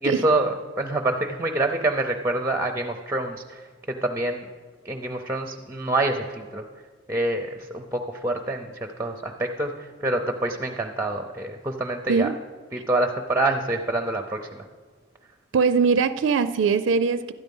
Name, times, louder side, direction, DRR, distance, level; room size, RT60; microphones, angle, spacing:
voice 1, 0.0-4.4 4.8-6.6 7.1-12.3 12.7-14.6, right 2 dB, 15° right, 5 dB, 0.6 m, -26 dB
voice 2, 15.5-17.3, right 5 dB, 75° right, 12 dB, 0.4 m, -21 dB
12.5 x 9.3 x 5.4 m, 1.6 s
head